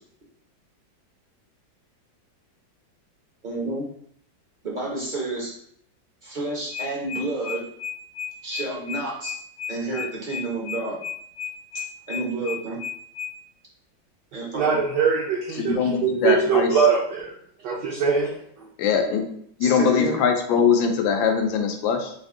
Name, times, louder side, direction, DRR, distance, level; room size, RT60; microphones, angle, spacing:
voice 1, 3.4-3.8 4.6-5.5 6.2-7.6 8.4-9.3 9.7-11.0 12.1-12.8 14.3-14.7 19.6-20.2, right 2 dB, 40° right, -3 dB, 0.7 m, -30 dB
sound 1, 6.7-13.3, left 9 dB, 50° left, 0.9 m, -33 dB
voice 2, 14.5-17.3 17.6-18.3, right 5 dB, 65° right, -5 dB, 1.3 m, -22 dB
voice 3, 15.5-16.7 18.8-19.3 19.6-22.1, left 6 dB, 85° left, 5 dB, 1.3 m, -22 dB
4.1 x 2.6 x 3.6 m, 0.64 s
omnidirectional pair, 2.1 m